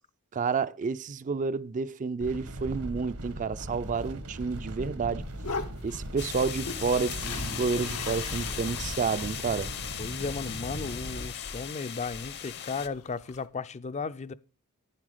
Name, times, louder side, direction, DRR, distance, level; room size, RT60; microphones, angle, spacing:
voice 1, 0.3-5.2 5.8-9.7, right 5 dB, 35° right, 0.4 m, -30 dB
sound 1, 2.2-11.3, right 1 dB, 80° right, 1.5 m, -39 dB
sound 2, 5.2-13.5, left 4 dB, 90° left, 1.2 m, -41 dB
sound 3, 6.2-12.9, left 9 dB, 50° left, 0.8 m, -38 dB
voice 2, 10.0-14.3, left 4 dB, 30° left, 0.4 m, -35 dB
10.0 x 7.4 x 5.0 m
head